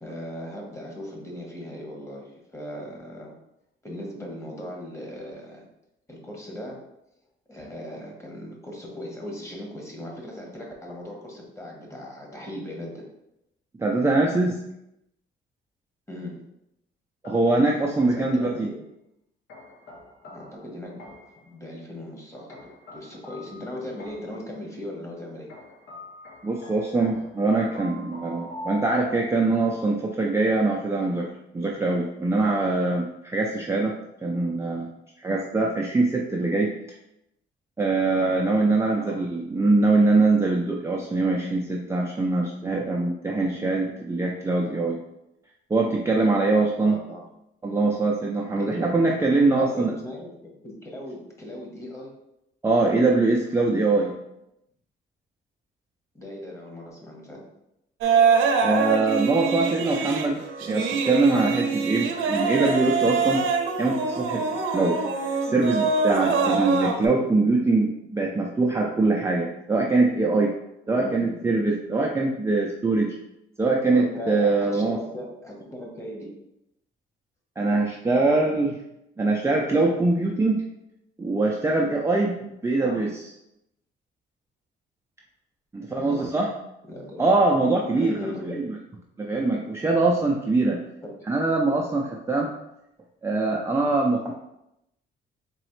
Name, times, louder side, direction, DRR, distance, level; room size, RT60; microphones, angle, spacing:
voice 1, 0.0-3.3 3.8-5.7 6.1-6.8 7.5-13.0 16.1-16.3 18.1-18.8 20.3-25.5 39.0-39.2 46.8-47.3 48.6-48.9 49.5-52.1 56.1-57.4 71.0-71.4 73.9-76.3 82.8-83.0 85.9-86.4 86.9-87.2 87.9-88.7, left 1 dB, 15° left, -1 dB, 1.2 m, -38 dB
voice 2, 13.8-14.6 17.2-18.7 26.4-31.3 31.5-33.9 34.2-34.9 35.2-36.7 37.8-45.0 45.7-47.0 47.6-49.9 52.6-54.1 58.6-63.4 63.8-64.4 64.7-65.0 65.4-70.5 70.9-73.1 73.6-75.0 77.6-78.8 79.2-80.6 81.2-83.2 85.7-86.5 87.2-88.1 88.5-88.8 89.2-90.8 91.3-92.5 93.2-94.3, right 3 dB, 15° right, -1 dB, 0.4 m, -23 dB
sound 1, 17.2-18.5 19.5-21.5 22.5-24.5 25.5-29.8, equal, 65° left, 0.9 m, -44 dB
sound 2, 58.0-67.1, right 5 dB, 80° right, 0.6 m, -24 dB
4.0 x 3.0 x 3.1 m, 0.84 s
cardioid pair, 90°, 20 cm